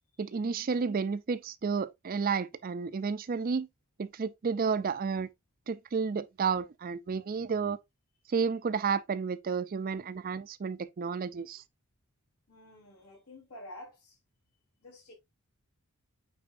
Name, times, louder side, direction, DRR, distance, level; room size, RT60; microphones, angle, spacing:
voice 1, 0.2-3.7 4.0-5.3 5.7-7.8 8.3-11.6, right 5 dB, 40° right, 0.4 m, -31 dB
voice 2, 12.5-14.2 14.8-15.1, left 1 dB, 85° left, 4.1 m, -49 dB
8.8 x 4.2 x 2.6 m
head